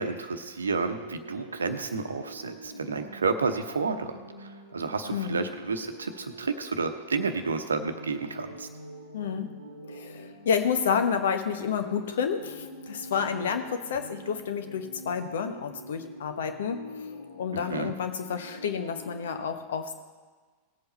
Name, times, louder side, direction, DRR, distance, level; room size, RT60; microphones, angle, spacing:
voice 1, 0.0-4.1 4.4-8.7 17.7-17.9, right 4 dB, 75° right, 8 dB, 0.9 m, -30 dB
sound 1, 0.8-19.4, equal, 90° left, 1.8 m, -45 dB
voice 2, 5.1-5.4 9.1-9.5 9.8-19.9, left 7 dB, 60° left, 7 dB, 1.1 m, -30 dB
18.5 x 7.9 x 4.3 m, 1.4 s
figure-of-eight pair, 90°, 0 cm